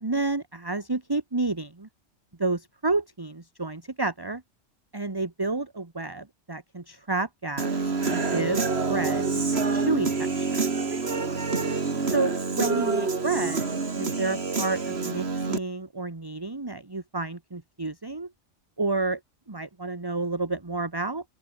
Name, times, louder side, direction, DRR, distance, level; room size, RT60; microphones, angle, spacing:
voice 1, 0.0-1.9 2.4-4.4 4.9-7.7 8.0-8.6 8.9-10.7 12.1-13.7 14.0-18.3 18.8-19.2 19.5-21.2, right 3 dB, 20° right, 1.4 m, -30 dB
Human voice / Guitar, 7.6-15.6, right 4 dB, 65° right, 2.4 m, -27 dB
open air
omnidirectional pair, 1.2 m